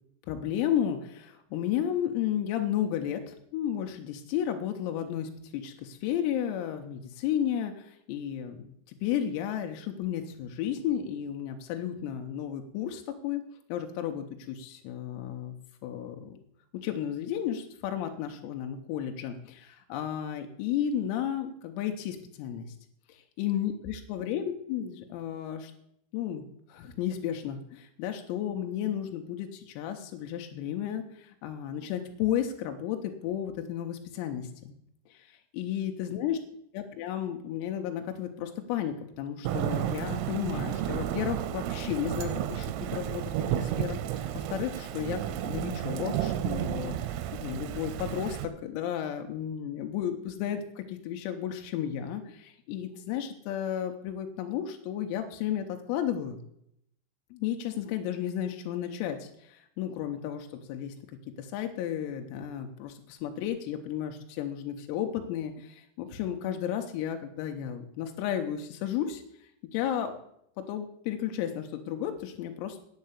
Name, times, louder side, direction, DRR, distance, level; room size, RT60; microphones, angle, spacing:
voice 1, 0.3-13.4 13.7-15.6 15.8-16.4 16.7-22.7 23.4-25.7 26.1-34.5 35.1-36.4 36.7-43.2 43.5-47.0 47.3-56.4 57.3-60.9 61.4-69.2 69.7-70.2 70.6-72.8, left 10 dB, 90° left, 5 dB, 3.7 m, -33 dB
Thunder / Rain, 39.5-48.5, right 11 dB, 85° right, 3.3 m, -32 dB
9.5 x 6.7 x 8.1 m, 0.73 s
omnidirectional pair, 6.0 m